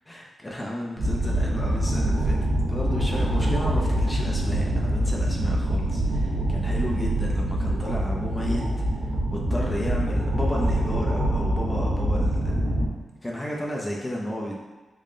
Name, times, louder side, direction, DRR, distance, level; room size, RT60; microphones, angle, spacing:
voice 1, 0.1-2.4 2.7-12.6 13.2-14.6, equal, 15° left, -3 dB, 0.5 m, -33 dB
Fundamental Knowledge, 1.0-12.9, right 1 dB, 70° right, 0.8 m, -25 dB
3.7 x 2.1 x 3.7 m, 1.2 s
wide cardioid pair, 110°, 0 cm